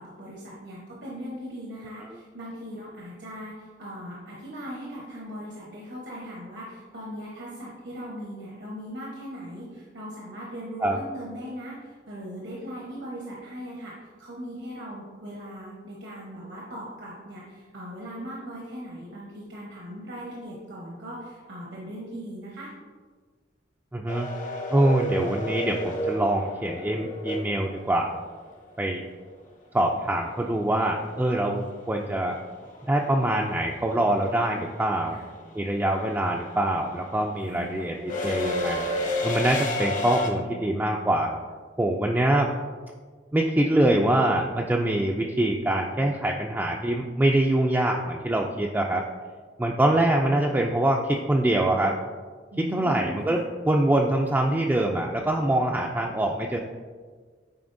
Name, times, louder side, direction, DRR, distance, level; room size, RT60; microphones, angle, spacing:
voice 1, 0.0-22.7 35.1-35.2 37.4-37.9 52.5-53.4, equal, 80° right, -4 dB, 1.1 m, -39 dB
voice 2, 23.9-24.3 24.7-28.1 28.8-29.0 29.7-32.4 32.9-35.2 35.5-38.9 39.2-41.3 41.8-42.5 43.3-49.1 49.6-52.0 52.6-56.6, right 1 dB, 10° right, -1 dB, 0.3 m, -24 dB
sound 1, 24.1-28.1 30.5-30.6 31.9-32.2 32.5-40.3, left 1 dB, 45° left, 0.9 m, -31 dB
9.2 x 4.3 x 2.6 m, 1.5 s
head